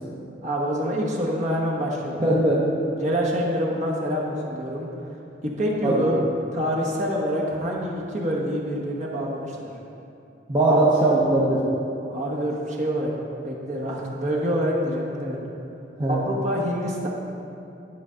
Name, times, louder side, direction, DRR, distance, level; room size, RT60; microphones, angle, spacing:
voice 1, 0.4-2.2 3.0-4.9 5.4-6.2 6.5-9.7 10.7-10.8 12.1-13.1 13.4-15.4 16.1-17.1, equal, 40° right, -3 dB, 1.1 m, -26 dB
voice 2, 2.2-2.6 5.8-6.1 10.5-11.6 16.0-16.2, right 2 dB, 25° right, -7 dB, 0.8 m, -20 dB
10.5 x 5.1 x 3.7 m, 2.7 s
head